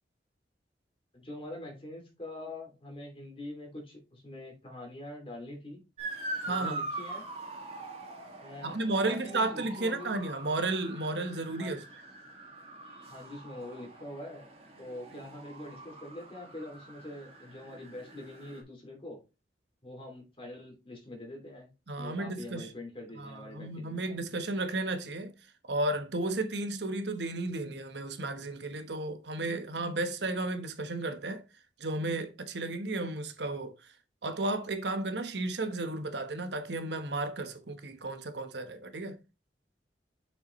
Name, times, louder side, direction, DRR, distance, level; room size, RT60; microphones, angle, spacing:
voice 1, 1.1-5.8 6.5-7.2 8.4-10.2 11.6-11.8 13.1-14.5 14.8-19.2 19.8-21.7 22.0-24.0, left 1 dB, 30° left, 2.6 m, -44 dB
Motor vehicle (road) / Siren, 6.0-18.6, right 2 dB, 35° right, 2.2 m, -43 dB
voice 2, 6.4-6.8 8.6-11.8 21.9-22.7 23.2-25.3 25.7-31.4 31.8-33.7 34.2-39.2, right 2 dB, 80° right, 1.1 m, -33 dB
6.7 x 5.6 x 3.1 m
head